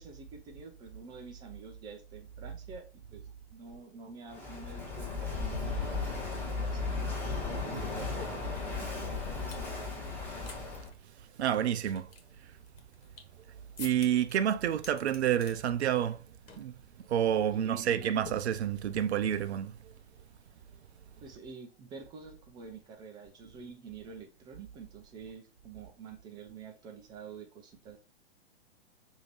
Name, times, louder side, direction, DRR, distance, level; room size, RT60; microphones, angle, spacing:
voice 1, 0.0-2.8 3.1-3.2 3.5-7.1 7.7-9.3 17.5-18.1 21.2-28.0, right 5 dB, 15° right, 0.4 m, -48 dB
Walk footsteps / Wind / Waves surf, 4.3-10.9, left 4 dB, 5° left, 1.7 m, -35 dB
sound 1, 8.2-9.7 10.1-10.6 10.8-10.9 11.5-13.4 13.8-14.3 14.7-15.6 15.9-16.2 16.5-16.7 17.0-17.3 18.2-19.0, left 4 dB, 60° left, 1.4 m, -50 dB
voice 2, 11.4-12.1 13.8-16.2 16.6-16.7 17.1-19.7, right 10 dB, 75° right, 0.5 m, -29 dB
6.4 x 2.7 x 3.0 m
hypercardioid pair, 120°, 33 cm